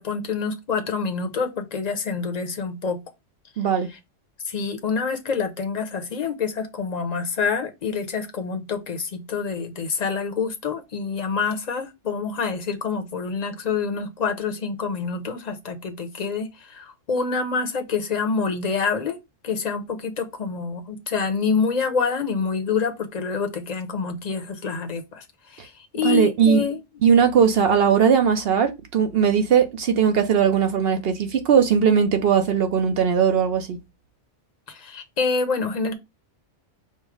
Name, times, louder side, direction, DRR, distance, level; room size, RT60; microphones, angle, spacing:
voice 1, 0.0-3.0 4.4-19.2 19.4-25.2 25.5-26.8 34.7-35.9, left 5 dB, 40° left, 0.7 m, -27 dB
voice 2, 3.6-3.9 26.0-26.6 27.0-33.8, right 7 dB, 60° right, 0.7 m, -19 dB
5.4 x 2.1 x 4.7 m
omnidirectional pair, 1.3 m